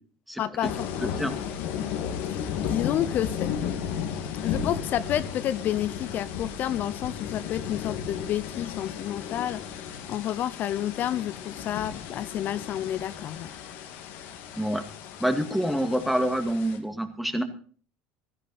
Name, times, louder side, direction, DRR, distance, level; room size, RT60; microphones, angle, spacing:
voice 1, 0.4-1.1 2.3-3.5 4.4-13.5, left 11 dB, 50° left, 14 dB, 0.6 m, -30 dB
sound 1, 0.6-16.8, left 8 dB, 70° left, 2.3 m, -34 dB
voice 2, 1.0-1.3 14.6-14.8 15.2-17.4, equal, ahead, 7 dB, 2.1 m, -27 dB
16.0 x 13.5 x 4.2 m, 0.43 s
supercardioid pair, 95°, 4 cm